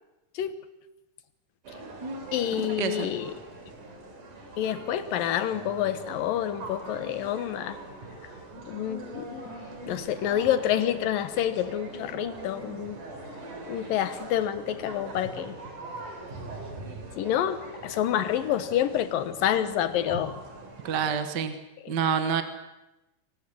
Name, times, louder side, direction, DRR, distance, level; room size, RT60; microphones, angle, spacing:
sound 1, 1.6-21.2, right 2 dB, 70° right, 5.2 m, -42 dB
voice 1, 2.3-3.3 4.6-7.8 8.7-9.5 9.9-13.0 13.7-15.6 17.2-20.3 21.8-22.0, left 10 dB, 90° left, 12 dB, 3.0 m, -28 dB
voice 2, 20.8-21.5 21.9-22.4, right 7 dB, 45° right, 9 dB, 1.5 m, -27 dB
24.5 x 18.5 x 7.7 m, 0.97 s
omnidirectional pair, 3.9 m